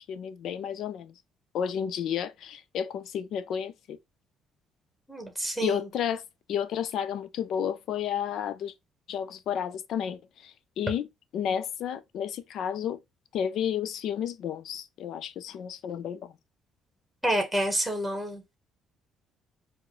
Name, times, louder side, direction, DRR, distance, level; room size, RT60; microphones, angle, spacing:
voice 1, 0.1-1.1 1.5-4.0 5.6-6.2 6.5-8.7 9.1-11.1 11.3-13.0 13.3-16.3, left 8 dB, 65° left, 0.5 m, -32 dB
voice 2, 5.1-5.9 17.2-18.4, right 1 dB, ahead, 1.3 m, -28 dB
4.6 x 2.2 x 3.0 m
cardioid pair, 110°, 0 cm